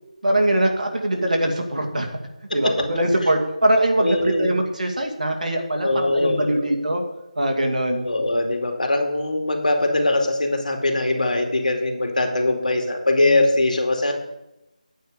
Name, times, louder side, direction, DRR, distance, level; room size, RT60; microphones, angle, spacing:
voice 1, 0.2-2.2 2.5-7.0 7.4-8.1, right 1 dB, 70° right, 2 dB, 2.4 m, -22 dB
voice 2, 4.0-4.5 5.8-6.7 8.0-14.1, left 2 dB, 75° left, 3 dB, 2.5 m, -21 dB
10.5 x 9.2 x 5.1 m, 0.92 s
figure-of-eight pair, 180°, 4 cm